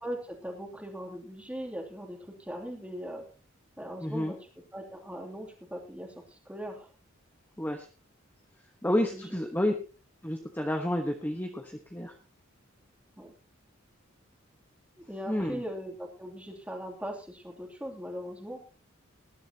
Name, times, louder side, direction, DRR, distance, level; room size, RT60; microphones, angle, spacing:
voice 1, 0.0-3.3 3.8-4.4 4.7-6.9 9.0-9.4 13.2-13.3 15.0-18.6, equal, 5° right, 0 dB, 2.9 m, -40 dB
voice 2, 4.0-4.3 7.6-7.9 8.8-9.7 10.2-12.1 15.3-15.6, left 1 dB, 10° left, 3 dB, 1.2 m, -30 dB
19.5 x 12.0 x 2.9 m, 0.34 s
head